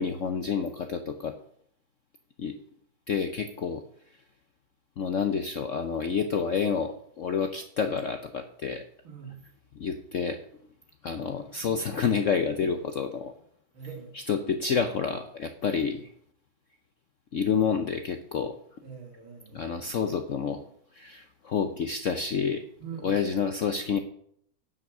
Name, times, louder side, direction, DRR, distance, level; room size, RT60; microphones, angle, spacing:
voice 1, 0.0-1.3 2.4-2.5 3.1-3.8 5.0-8.8 9.8-10.4 11.0-13.3 14.3-16.1 17.3-18.5 19.5-20.6 20.9-22.6 23.0-24.0, left 6 dB, 65° left, 7 dB, 0.7 m, -29 dB
voice 2, 9.0-9.4 13.7-14.1 18.8-20.1 22.8-23.1, right 7 dB, 85° right, 2 dB, 2.9 m, -43 dB
9.8 x 5.8 x 6.1 m, 0.66 s
omnidirectional pair, 2.2 m